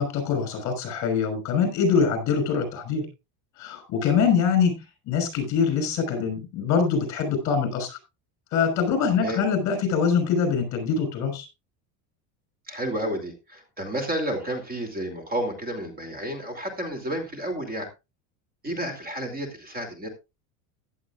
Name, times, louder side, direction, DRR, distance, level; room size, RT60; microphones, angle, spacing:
voice 1, 0.0-3.1 3.6-8.0 8.5-11.5, left 6 dB, 45° left, 7 dB, 5.8 m, -24 dB
voice 2, 12.7-17.9 18.6-20.1, right 1 dB, 20° right, 5 dB, 2.7 m, -31 dB
15.5 x 11.0 x 2.4 m, 0.25 s
cardioid pair, 155°, 42 cm